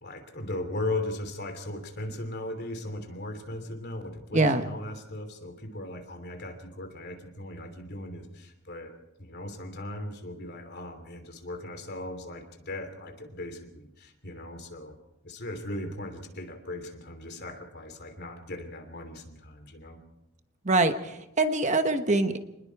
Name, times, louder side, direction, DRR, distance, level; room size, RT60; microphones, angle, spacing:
voice 1, 0.0-8.9 9.2-15.0 15.2-20.0, left 1 dB, 50° left, 6 dB, 3.1 m, -38 dB
voice 2, 20.6-22.4, right 2 dB, 35° right, 8 dB, 1.1 m, -24 dB
27.0 x 20.5 x 4.8 m, 0.91 s
head